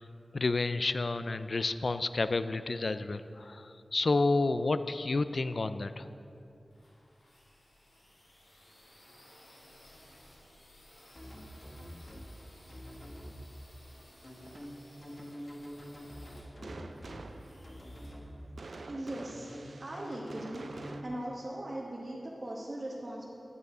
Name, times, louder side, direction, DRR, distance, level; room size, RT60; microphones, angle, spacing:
voice 1, 0.3-6.1, left 3 dB, 55° left, 12 dB, 0.3 m, -30 dB
sound 1, 6.7-19.1, left 1 dB, 85° left, 2.2 m, -58 dB
sound 2, 11.1-12.3 12.7-13.3 14.2-17.2 17.6-18.3 19.2-21.0, equal, 35° left, 1.2 m, -46 dB
sound 3, 14.4-21.0, right 3 dB, 70° right, 0.5 m, -49 dB
voice 2, 18.9-19.5 19.8-20.7 21.0-23.2, right 1 dB, 45° right, -5 dB, 1.1 m, -39 dB
9.5 x 8.1 x 4.9 m, 2.8 s
wide cardioid pair, 80°, 0 cm